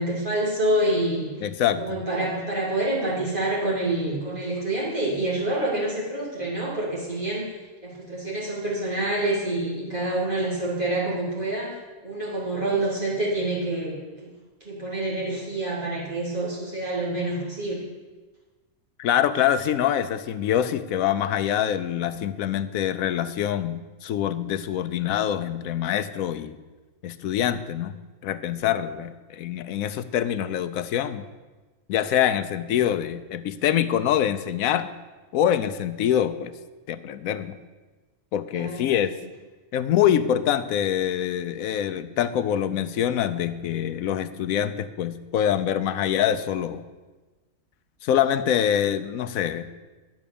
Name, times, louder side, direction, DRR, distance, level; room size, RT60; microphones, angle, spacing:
voice 1, 0.0-1.3 1.8-7.5 7.8-11.8 12.0-14.3 14.6-17.9 38.5-38.8, right 1 dB, 35° right, -7 dB, 3.4 m, -27 dB
voice 2, 1.4-2.0 19.0-26.6 27.0-27.9 28.2-31.2 31.9-34.9 35.3-36.5 36.9-37.5 38.3-39.1 39.7-46.8 48.0-49.7, left 10 dB, 80° left, 12 dB, 1.0 m, -25 dB
10.5 x 6.2 x 6.9 m, 1.2 s
omnidirectional pair, 1.5 m